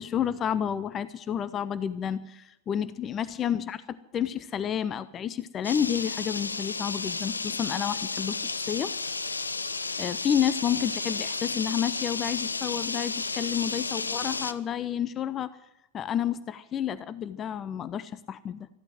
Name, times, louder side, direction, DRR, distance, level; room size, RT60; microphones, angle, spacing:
voice 1, 0.0-8.9 10.0-15.6 15.9-18.7, left 9 dB, 25° left, 16 dB, 0.6 m, -30 dB
sound 1, 5.6-14.5, left 4 dB, 80° left, 0.7 m, -32 dB
14.5 x 12.0 x 7.7 m, 0.87 s
figure-of-eight pair, 90°, 0 cm